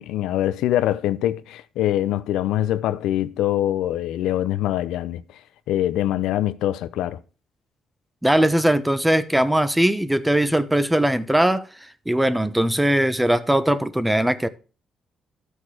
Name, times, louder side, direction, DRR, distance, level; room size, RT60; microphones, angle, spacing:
voice 1, 0.0-5.2 5.7-7.2, left 13 dB, 90° left, 0.6 m, -23 dB
voice 2, 8.2-11.6 12.1-14.5, right 1 dB, 5° right, 0.9 m, -20 dB
13.0 x 6.4 x 4.9 m
cardioid pair, 90°, 0 cm